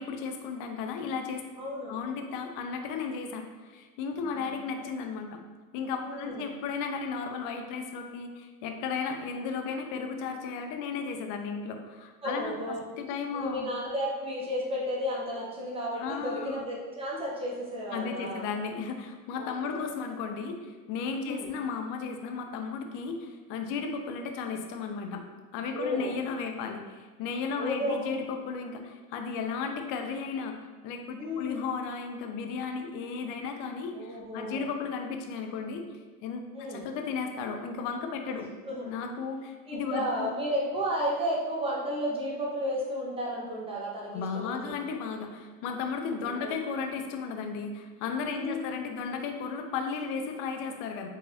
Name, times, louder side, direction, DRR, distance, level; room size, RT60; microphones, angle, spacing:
voice 1, 0.0-1.4 1.9-5.4 5.7-12.5 13.0-13.7 16.0-16.6 17.9-25.2 25.5-35.9 36.2-38.5 38.9-40.3 44.1-51.1, left 5 dB, 45° left, 5 dB, 0.6 m, -34 dB
voice 2, 1.6-2.0 4.2-4.8 6.0-6.5 12.2-12.8 13.3-18.5 19.3-19.9 21.3-21.5 25.7-26.2 27.6-28.0 31.2-31.6 33.9-34.7 36.5-36.9 38.6-38.9 39.7-44.7 45.2-45.3 46.2-46.6 48.3-48.7, equal, 10° right, -5 dB, 1.2 m, -33 dB
4.7 x 3.1 x 2.7 m, 1.3 s
hypercardioid pair, 95°, 47 cm